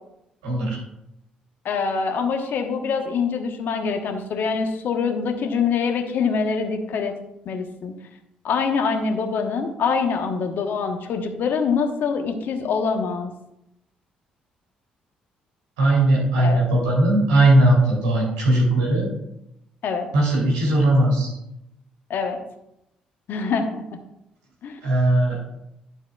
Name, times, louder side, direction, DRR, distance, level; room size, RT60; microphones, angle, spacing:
voice 1, 0.4-0.8 15.8-19.1 20.1-21.3 24.8-25.4, right 1 dB, 75° right, -4 dB, 3.2 m, -18 dB
voice 2, 1.6-7.1 7.4-7.9 8.4-13.3 16.4-16.6 19.8-20.1 22.1-22.4 23.3-23.8 24.6-24.8, left 5 dB, 55° left, 5 dB, 1.1 m, -24 dB
12.0 x 6.9 x 2.4 m, 0.86 s
figure-of-eight pair, 45°, 4 cm